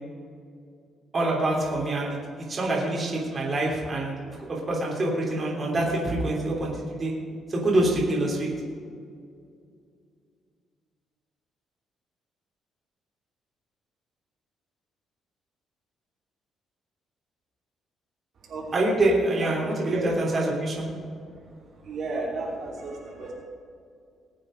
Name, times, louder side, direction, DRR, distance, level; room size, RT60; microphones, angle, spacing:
voice 1, 1.1-2.2 2.5-4.1 4.4-7.1 7.5-8.5 18.7-20.9, right 1 dB, 30° right, -3 dB, 3.2 m, -25 dB
voice 2, 18.4-18.9 19.4-19.5 19.9-20.1 21.8-23.3, right 3 dB, 55° right, -3 dB, 2.9 m, -33 dB
20.0 x 7.6 x 5.2 m, 2.3 s
cardioid pair, 140°, 0 cm